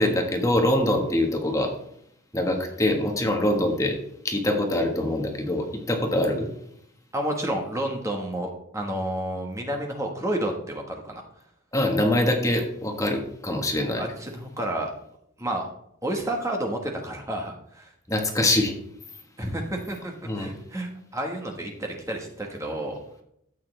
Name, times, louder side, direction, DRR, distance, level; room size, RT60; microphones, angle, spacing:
voice 1, 0.0-1.7 2.3-4.0 4.2-6.5 11.7-14.0 18.1-18.7 20.2-20.5, left 1 dB, 15° left, 2 dB, 1.5 m, -24 dB
voice 2, 7.1-11.2 14.0-14.9 15.4-15.7 16.0-17.9 19.4-23.0, right 1 dB, 15° right, 1 dB, 1.4 m, -30 dB
13.5 x 8.5 x 3.4 m, 0.73 s
head